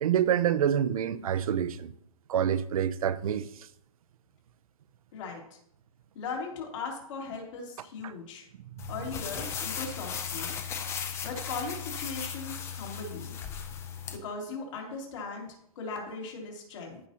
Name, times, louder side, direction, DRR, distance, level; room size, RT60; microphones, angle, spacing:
voice 1, 0.0-1.9 2.3-3.5 8.0-8.1, right 9 dB, 70° right, 0.6 m, -27 dB
voice 2, 5.1-5.6 6.1-8.4 8.9-10.6 11.2-13.4 14.1-17.0, left 4 dB, 60° left, 3.1 m, -38 dB
sound 1, 8.8-14.2, left 7 dB, 15° left, 0.5 m, -36 dB
14.5 x 5.6 x 2.9 m
hypercardioid pair, 150°, 19 cm